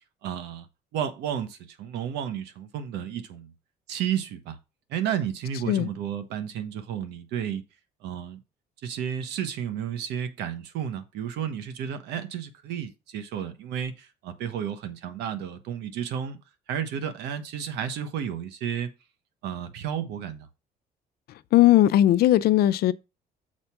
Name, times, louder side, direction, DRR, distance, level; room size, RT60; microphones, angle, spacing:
voice 1, 0.2-0.7 0.9-3.5 3.9-4.5 4.9-7.6 8.0-8.4 8.8-16.4 16.7-18.9 19.4-20.5, right 9 dB, 85° right, 1.2 m, -32 dB
voice 2, 21.5-22.9, left 13 dB, 65° left, 0.5 m, -18 dB
6.6 x 4.4 x 5.9 m
cardioid pair, 110°, 17 cm